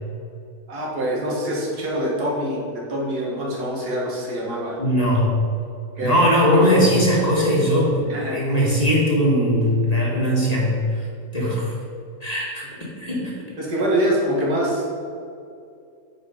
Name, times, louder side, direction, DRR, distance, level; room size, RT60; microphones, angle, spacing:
voice 1, 0.7-4.8 6.0-6.1 8.1-8.4 12.4-12.5 13.6-14.8, right 1 dB, 85° right, -4 dB, 2.3 m, -25 dB
voice 2, 4.8-5.3 6.0-10.7 11.3-11.7 12.2-12.6 13.0-13.3, equal, 25° left, -4 dB, 1.6 m, -19 dB
9.3 x 4.5 x 5.1 m, 2.5 s
omnidirectional pair, 1.7 m